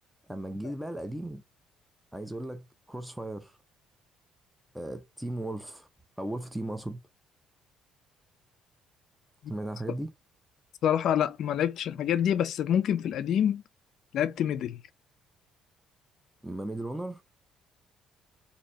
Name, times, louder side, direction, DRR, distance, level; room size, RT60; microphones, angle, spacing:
voice 1, 0.3-1.4 2.1-3.6 4.7-5.9 6.2-7.0 9.5-10.1 16.4-17.2, right 1 dB, 5° right, 0.5 m, -36 dB
voice 2, 10.8-13.6 14.1-14.8, left 9 dB, 65° left, 0.4 m, -26 dB
4.0 x 2.7 x 3.0 m
cardioid pair, 105°, 0 cm